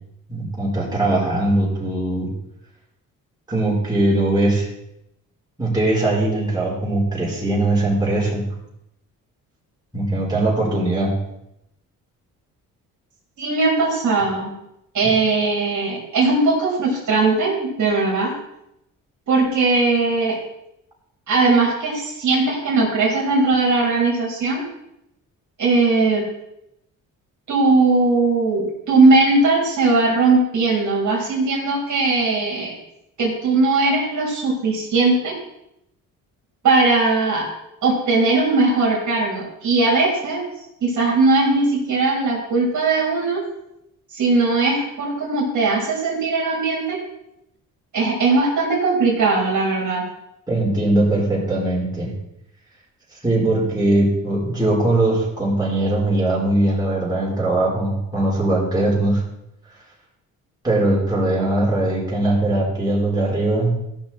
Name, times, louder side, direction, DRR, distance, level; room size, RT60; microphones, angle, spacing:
voice 1, 0.3-2.3 3.5-4.7 5.6-8.4 9.9-11.1 50.5-52.1 53.2-59.2 60.6-63.7, right 1 dB, 10° right, -5 dB, 4.7 m, -20 dB
voice 2, 13.4-14.5 14.9-18.3 19.3-20.4 21.3-24.6 25.6-26.2 27.5-32.8 33.2-35.3 36.6-37.5 37.8-40.4 40.8-43.4 44.1-47.0 47.9-50.0, right 3 dB, 55° right, -3 dB, 3.5 m, -19 dB
15.0 x 6.3 x 4.4 m, 0.82 s
cardioid pair, 100°, 34 cm